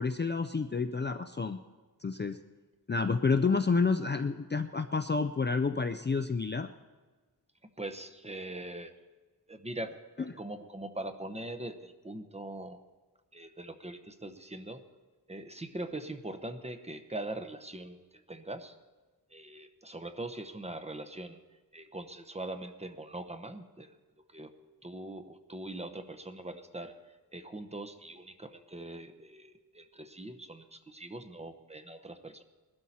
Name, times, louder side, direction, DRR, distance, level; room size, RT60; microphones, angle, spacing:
voice 1, 0.0-1.6 2.0-2.4 2.9-6.7 10.2-10.3, left 4 dB, 30° left, 8 dB, 0.5 m, -29 dB
voice 2, 7.8-8.9 9.5-12.8 13.3-14.8 15.3-18.0 18.3-18.7 19.3-21.4 21.7-24.0 24.3-24.6 24.8-27.0 27.3-32.4, right 1 dB, 15° right, 7 dB, 0.9 m, -42 dB
20.5 x 12.5 x 4.3 m, 1.3 s
wide cardioid pair, 135°, 38 cm